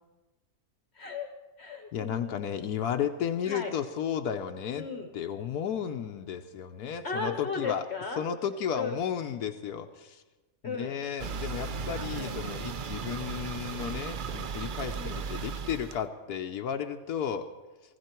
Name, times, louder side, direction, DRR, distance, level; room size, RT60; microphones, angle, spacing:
voice 1, 0.9-1.3 1.6-2.7 3.4-3.7 4.8-5.1 7.0-8.3 8.7-9.0 10.6-11.0 12.1-12.4 14.9-15.2, left 4 dB, 50° left, 5 dB, 1.1 m, -36 dB
voice 2, 1.9-4.8 5.1-7.8 8.2-10.2 10.6-17.5, left 8 dB, 80° left, 5 dB, 1.2 m, -33 dB
sound 1, 11.2-16.0, right 5 dB, 70° right, 0.4 m, -36 dB
19.5 x 15.0 x 4.4 m, 1.2 s
omnidirectional pair, 1.6 m